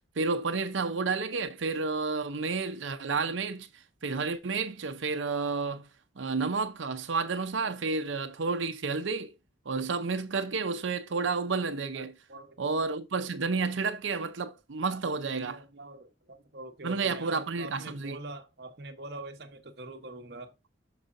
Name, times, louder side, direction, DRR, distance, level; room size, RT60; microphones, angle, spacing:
voice 1, 0.2-3.7 4.0-5.9 6.2-9.3 9.7-12.2 12.6-15.6 16.8-18.2, right 4 dB, 85° right, 0.7 m, -31 dB
voice 2, 14.9-20.5, right 2 dB, 55° right, 1.1 m, -44 dB
6.8 x 4.9 x 3.7 m
head